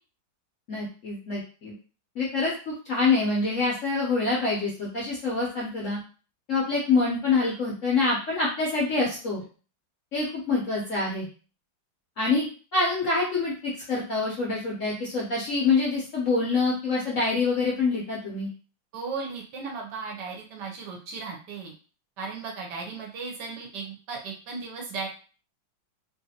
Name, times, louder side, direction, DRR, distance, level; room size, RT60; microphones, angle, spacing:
voice 1, 0.7-1.7 2.2-6.0 6.5-9.4 10.1-11.3 12.2-12.4 12.7-18.5, left 3 dB, 60° left, -5 dB, 0.8 m, -26 dB
voice 2, 18.9-21.7 22.2-25.1, right 4 dB, 70° right, 0 dB, 1.2 m, -36 dB
3.1 x 2.5 x 2.7 m, 0.38 s
omnidirectional pair, 2.1 m